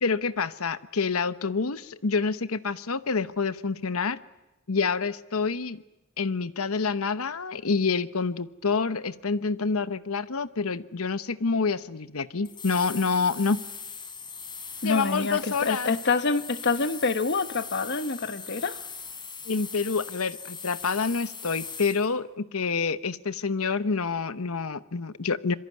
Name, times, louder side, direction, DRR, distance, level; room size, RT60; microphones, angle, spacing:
voice 1, 0.0-4.2 4.7-5.8 6.2-13.6 14.8-15.9 19.5-25.5, left 4 dB, 75° left, 1.0 m, -27 dB
sound 1, 12.4-22.1, left 5 dB, 20° left, 3.7 m, -40 dB
voice 2, 14.8-18.8, left 4 dB, 50° left, 1.2 m, -26 dB
26.0 x 23.0 x 9.6 m
head